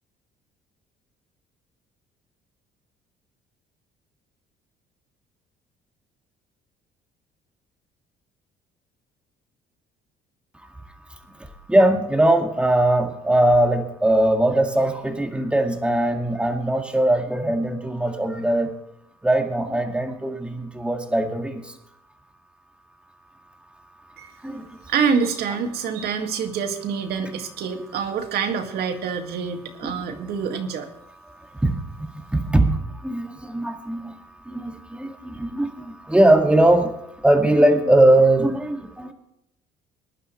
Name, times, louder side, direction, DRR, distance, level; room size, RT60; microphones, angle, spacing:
voice 1, 11.7-18.7 19.2-21.6 24.4-24.7 29.8-30.0 31.6-34.1 34.5-36.9 37.2-39.1, right 1 dB, 5° right, 4 dB, 2.0 m, -20 dB
voice 2, 24.9-30.9, right 6 dB, 70° right, 5 dB, 2.0 m, -26 dB
21.5 x 11.0 x 3.2 m, 0.81 s
cardioid pair, 110°, 17 cm